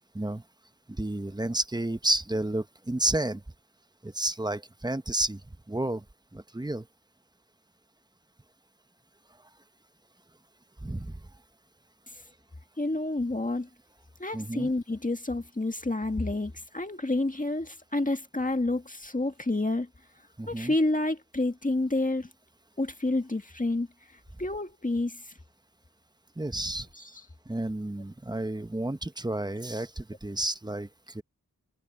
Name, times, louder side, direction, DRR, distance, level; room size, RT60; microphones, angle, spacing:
voice 1, 0.9-3.4 4.0-5.4 5.7-6.0 6.3-6.9 10.8-11.2 14.3-14.7 20.4-20.7 26.4-26.9 27.5-31.2, right 1 dB, 15° right, 1.0 m, -31 dB
voice 2, 12.8-13.7 14.2-19.9 20.5-22.3 22.8-23.9 24.4-25.2 27.0-27.1, left 2 dB, 25° left, 1.9 m, -29 dB
wide cardioid pair, 55°, 33 cm